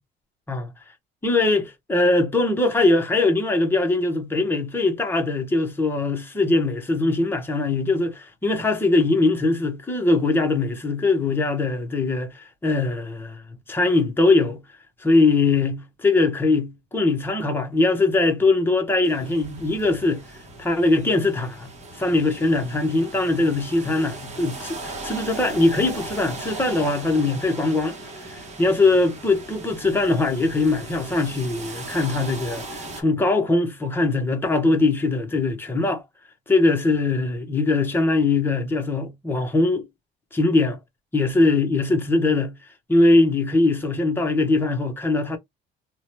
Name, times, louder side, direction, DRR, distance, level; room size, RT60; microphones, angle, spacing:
voice 1, 1.2-13.4 13.7-14.6 15.0-20.2 20.6-28.0 28.3-36.0 36.5-39.9 40.3-40.8 41.1-42.5 42.9-45.4, left 2 dB, 10° left, 0.8 m, -21 dB
sound 1, 19.0-33.0, right 2 dB, 35° right, 1.0 m, -38 dB
2.7 x 2.2 x 3.0 m
cardioid pair, 140°, 20 cm